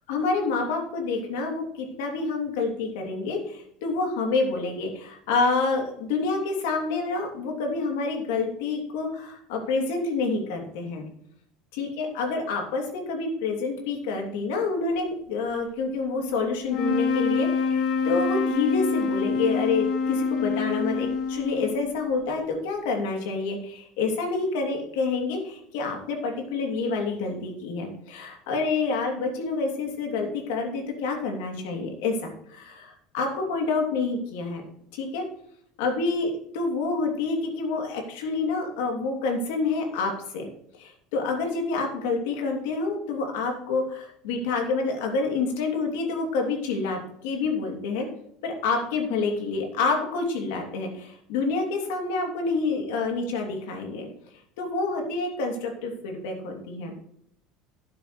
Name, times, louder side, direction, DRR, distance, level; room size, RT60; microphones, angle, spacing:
voice 1, 0.1-11.0 11.7-34.6 34.9-35.2 35.8-40.5 40.8-48.1 48.4-54.1 54.6-56.9, left 3 dB, 80° left, 2 dB, 2.8 m, -28 dB
sound 1, 16.6-22.1, left 5 dB, 40° left, 0.8 m, -26 dB
12.0 x 9.6 x 3.2 m, 0.70 s
cardioid pair, 175°, 0 cm